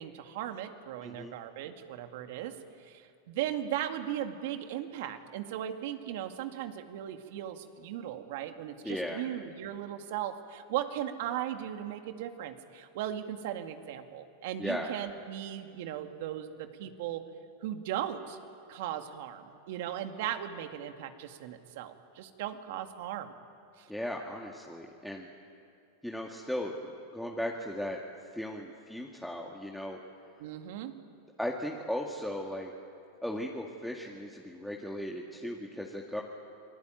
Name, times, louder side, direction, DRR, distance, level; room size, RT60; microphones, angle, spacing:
voice 1, 0.0-2.5 2.8-17.2 17.6-18.4 18.7-23.3 23.8-23.9 30.4-30.9, right 11 dB, 65° right, 6 dB, 2.2 m, -37 dB
voice 2, 1.0-1.3 8.8-9.2 14.6-14.9 23.9-25.3 26.0-26.7 27.1-28.0 28.3-30.0 31.4-32.7 33.2-36.2, left 1 dB, ahead, -1 dB, 2.1 m, -36 dB
28.0 x 19.5 x 9.3 m, 2.5 s
hypercardioid pair, 115°, 0 cm